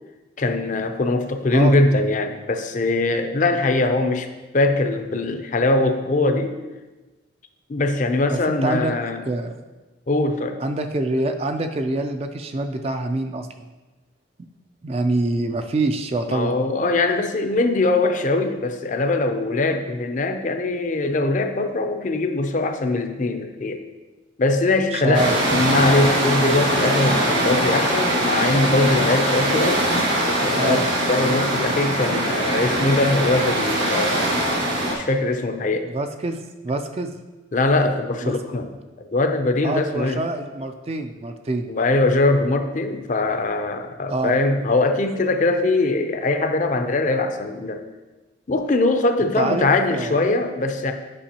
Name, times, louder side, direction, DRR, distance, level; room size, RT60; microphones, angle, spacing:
voice 1, 0.4-4.3 4.5-6.6 7.7-9.3 10.1-10.6 16.3-23.8 24.4-30.1 30.4-34.3 35.0-35.9 37.5-38.7 39.0-40.2 41.7-47.8 48.5-50.9, left 2 dB, 40° left, 7 dB, 0.5 m, -21 dB
voice 2, 8.3-8.9 9.3-9.6 10.6-13.7 14.8-16.5 24.9-25.4 30.6-30.8 35.9-37.2 38.2-38.4 39.6-41.7 44.1-44.4 49.4-50.2, right 2 dB, 30° right, 7 dB, 0.3 m, -25 dB
sound 1, 25.1-34.9, right 1 dB, 60° right, 1.8 m, -22 dB
8.6 x 5.3 x 2.9 m, 1.2 s
head